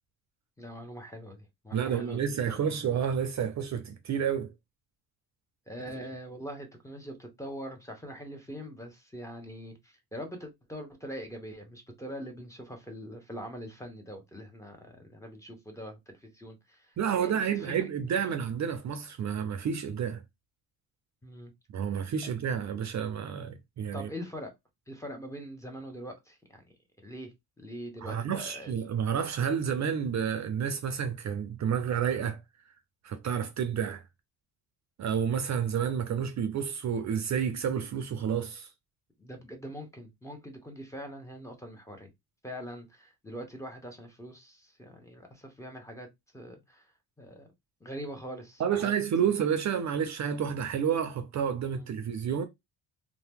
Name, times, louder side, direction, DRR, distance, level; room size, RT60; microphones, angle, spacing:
voice 1, 0.6-2.2 2.4-2.6 5.7-18.2 21.2-21.5 22.2-22.3 23.9-24.5 24.9-26.7 27.0-28.7 39.2-42.1 42.4-46.1 46.3-46.9 47.2-47.5 47.8-48.9 49.2-49.3 51.7-51.9, equal, 10° left, 0.8 m, -43 dB
voice 2, 1.7-4.5 17.0-20.2 21.7-24.1 28.0-32.4 33.0-34.0 35.0-38.7 48.6-52.4, right 8 dB, 45° right, 0.5 m, -30 dB
2.7 x 2.1 x 3.4 m
cardioid pair, 115°, 38 cm